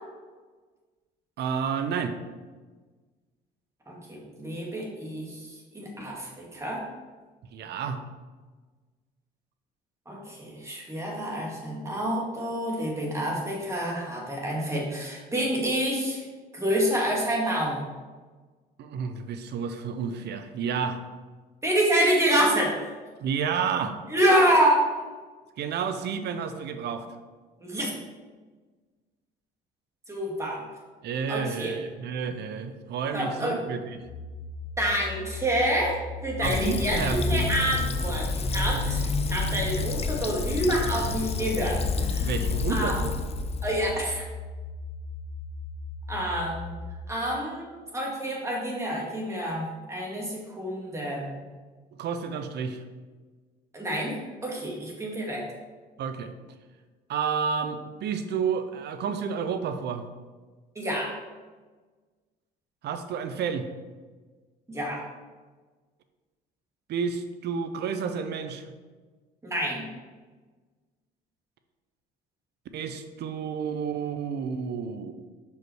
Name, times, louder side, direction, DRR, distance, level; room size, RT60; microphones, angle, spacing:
voice 1, 1.4-2.1 7.5-8.0 18.8-21.0 23.2-23.9 25.6-27.0 31.0-34.0 36.4-37.5 42.2-43.2 52.0-52.8 56.0-56.3 57.1-60.1 62.8-63.7 66.9-68.6 72.7-75.1, right 6 dB, 60° right, 8 dB, 0.8 m, -30 dB
voice 2, 3.9-5.5 5.7-6.8 10.1-16.2 16.5-17.8 21.6-22.9 24.1-24.8 27.6-27.9 30.1-30.6 31.3-31.7 33.1-33.6 34.8-42.3 42.7-43.0 43.6-44.3 46.1-46.7 47.1-51.3 53.7-55.5 60.8-61.2 64.7-65.0 69.4-69.8, right 1 dB, 15° right, -3 dB, 2.4 m, -27 dB
sound 1, 34.0-47.0, left 3 dB, 85° left, 1.4 m, -39 dB
Fill (with liquid), 36.4-44.1, left 3 dB, 35° left, 0.7 m, -29 dB
6.0 x 5.4 x 4.7 m, 1.4 s
supercardioid pair, 90°, 19 cm